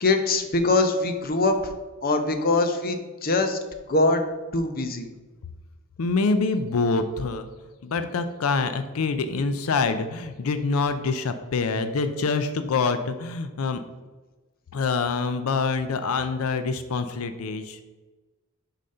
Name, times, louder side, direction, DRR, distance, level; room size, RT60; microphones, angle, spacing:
voice 1, 0.0-1.7 2.0-3.6 3.9-4.2 4.5-5.1, left 2 dB, 40° left, 7 dB, 0.7 m, -23 dB
voice 2, 6.0-7.5 7.8-13.8 14.7-17.8, left 4 dB, 75° left, 10 dB, 0.5 m, -25 dB
6.4 x 4.1 x 5.4 m, 1.2 s
head